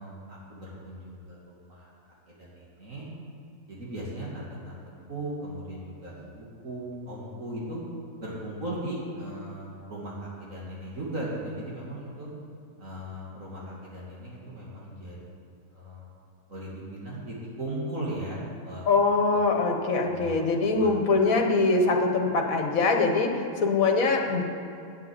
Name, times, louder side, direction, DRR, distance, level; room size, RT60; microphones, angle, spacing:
voice 1, 0.0-1.9 2.3-3.1 3.7-4.8 5.1-7.8 8.2-12.3 12.8-16.1 16.5-18.9 20.0-20.4 20.7-21.2, right 1 dB, 55° right, -6 dB, 2.5 m, -37 dB
voice 2, 18.9-24.4, left 3 dB, 60° left, 3 dB, 1.7 m, -23 dB
9.6 x 7.7 x 9.1 m, 2.5 s
omnidirectional pair, 1.7 m